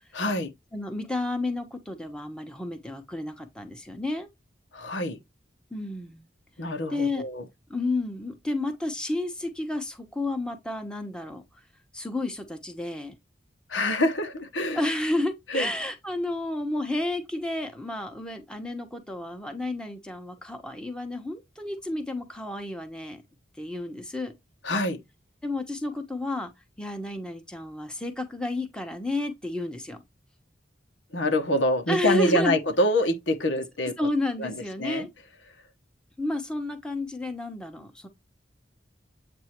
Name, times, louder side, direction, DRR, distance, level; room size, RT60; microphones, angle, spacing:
voice 1, 0.1-0.5 4.7-5.2 6.6-7.4 13.7-14.8 15.5-15.7 24.6-25.0 31.1-33.9 34.4-34.5 34.8-35.1, left 1 dB, 85° left, 1.2 m, -25 dB
voice 2, 0.7-4.3 5.7-6.3 6.9-7.2 7.7-11.4 11.9-13.1 14.7-23.2 23.6-24.3 25.4-26.5 26.8-30.0 31.9-32.6 34.0-35.1 36.2-38.1, left 2 dB, 5° left, 1.0 m, -31 dB
8.1 x 2.7 x 4.4 m
head